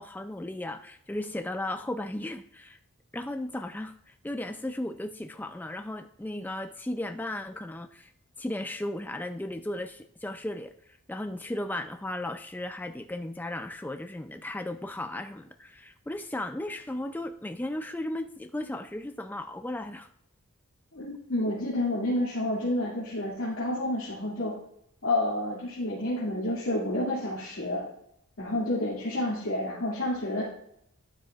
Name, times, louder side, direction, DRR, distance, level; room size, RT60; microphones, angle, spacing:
voice 1, 0.0-2.8 3.1-8.1 8.4-10.7 11.1-20.1, left 1 dB, 10° left, 6 dB, 0.4 m, -35 dB
voice 2, 20.9-24.6 25.0-27.8 28.4-30.4, left 1 dB, 70° left, -7 dB, 2.4 m, -29 dB
12.0 x 9.4 x 2.4 m, 0.71 s
head